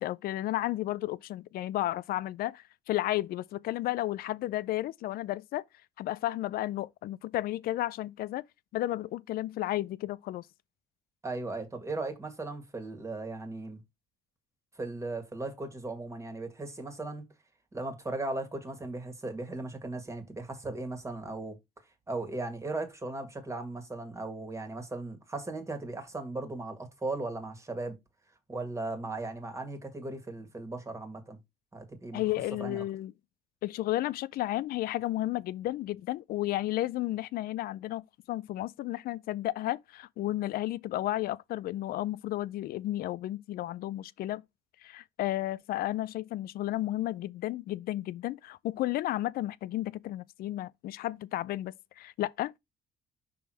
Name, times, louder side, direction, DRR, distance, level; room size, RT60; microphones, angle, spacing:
voice 1, 0.0-5.6 6.0-8.4 8.7-10.5 32.1-33.1 33.6-44.4 44.8-52.6, left 15 dB, 65° left, 0.4 m, -33 dB
voice 2, 11.2-13.8 14.8-17.3 17.7-21.6 22.1-28.0 28.5-31.4 31.7-32.2 32.6-32.8, right 2 dB, 15° right, 1.9 m, -37 dB
6.1 x 3.4 x 4.7 m
cardioid pair, 110°, 17 cm